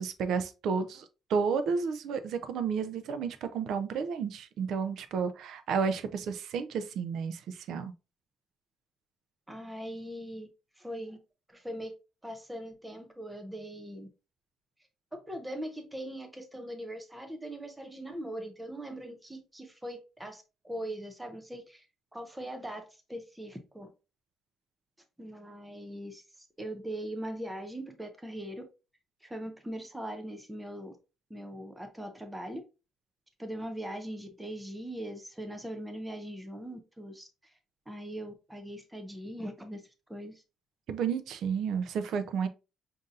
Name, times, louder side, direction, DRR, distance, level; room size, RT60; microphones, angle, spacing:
voice 1, 0.0-7.9 40.9-42.5, right 6 dB, 60° right, 0.4 m, -31 dB
voice 2, 9.5-10.5 10.8-11.2 11.5-11.9 12.2-14.1 15.3-21.9 22.1-23.9 25.2-28.6 29.2-31.0 31.3-32.6 33.4-37.5 37.9-40.4, right 1 dB, 5° right, 0.5 m, -41 dB
5.2 x 2.6 x 2.4 m
cardioid pair, 175°, 0 cm